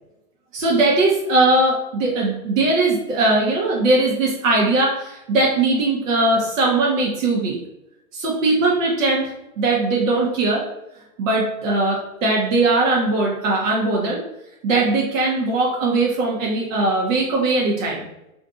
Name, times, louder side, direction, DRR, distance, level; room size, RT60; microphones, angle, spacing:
voice 1, 0.5-7.6 8.1-9.3 9.6-10.6 11.2-14.2 14.6-18.1, right 2 dB, 55° right, -3 dB, 0.9 m, -20 dB
2.7 x 2.5 x 3.5 m, 0.91 s
hypercardioid pair, 150°, 46 cm